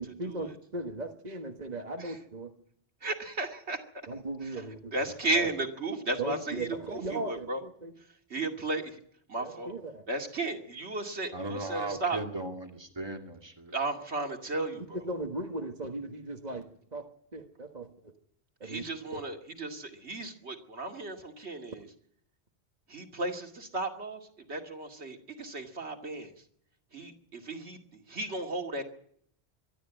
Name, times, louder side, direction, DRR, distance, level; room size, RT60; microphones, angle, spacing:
voice 1, 0.2-2.5 4.1-5.5 6.2-7.9 9.4-10.0 14.9-17.0 17.3-17.9 18.6-18.8 19.1-19.2, right 2 dB, 40° right, 2 dB, 1.7 m, -38 dB
voice 2, 3.0-3.8 4.4-4.6 4.9-7.6 8.3-9.0 9.3-9.7 10.1-12.2 13.7-14.8 18.6-21.8 22.9-24.2 24.5-26.3 26.9-27.8 28.1-28.8, right 2 dB, 75° right, 3 dB, 2.7 m, -34 dB
voice 3, 11.3-13.7, right 2 dB, 25° right, 3 dB, 2.5 m, -37 dB
24.0 x 12.5 x 9.1 m, 0.65 s
omnidirectional pair, 1.1 m